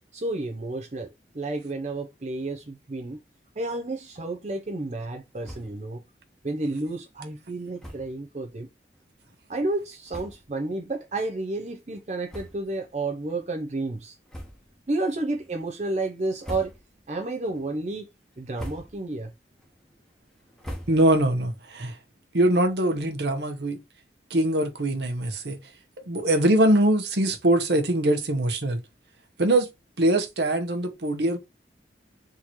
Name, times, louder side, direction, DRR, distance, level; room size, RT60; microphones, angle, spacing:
voice 1, 0.1-1.1 1.3-3.2 3.6-6.0 6.4-8.7 9.5-14.2 14.9-16.7 17.1-18.1 18.4-19.3, right 2 dB, 40° right, 0.6 m, -31 dB
sound 1, 5.4-5.9 6.2-6.3 6.6-6.8 7.8-8.2 8.9-9.0 9.7-9.8 10.1-10.6 11.2-11.3 12.2-12.9 13.3-13.4 14.3-14.9 15.3-15.7 16.2-17.1 17.5-17.9 18.3-19.2 19.5-21.4, equal, 5° left, 1.0 m, -42 dB
voice 2, 20.9-22.0 22.3-23.8 24.3-25.6 26.1-28.8 29.4-29.7 30.0-31.4, right 1 dB, 70° right, 1.0 m, -22 dB
3.7 x 3.1 x 4.1 m
head